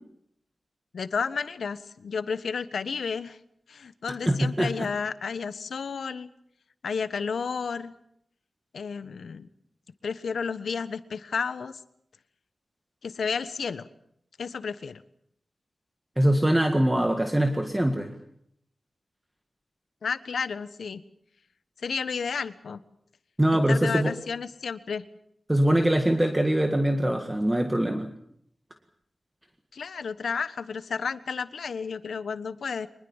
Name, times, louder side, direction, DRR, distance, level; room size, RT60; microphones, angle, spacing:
voice 1, 0.9-3.4 3.7-6.3 6.8-7.9 8.7-9.5 10.0-11.8 13.0-13.9 14.4-15.0 20.0-21.0 21.8-22.8 23.7-25.1 29.7-32.9, left 5 dB, 90° left, 13 dB, 1.3 m, -32 dB
voice 2, 4.2-4.9 16.2-18.1 23.4-24.1 25.5-28.1, right 1 dB, 15° right, 5 dB, 1.8 m, -23 dB
24.5 x 21.0 x 7.3 m, 0.71 s
wide cardioid pair, 125°, 0 cm